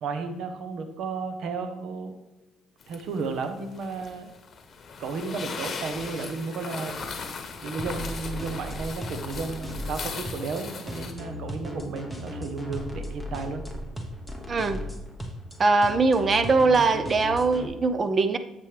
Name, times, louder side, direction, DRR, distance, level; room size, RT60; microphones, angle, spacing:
voice 1, 0.0-2.1 2.9-4.3 5.0-7.0 7.6-13.6, right 4 dB, 65° right, 7 dB, 1.0 m, -33 dB
sound 1, 2.8-11.1, left 5 dB, 40° left, 1.2 m, -38 dB
sound 2, 7.8-17.7, left 1 dB, 5° right, 1.1 m, -36 dB
voice 2, 14.5-14.8 15.6-18.4, right 3 dB, 30° right, 10 dB, 0.7 m, -21 dB
9.9 x 7.6 x 3.4 m, 1.1 s
cardioid pair, 130°, 0 cm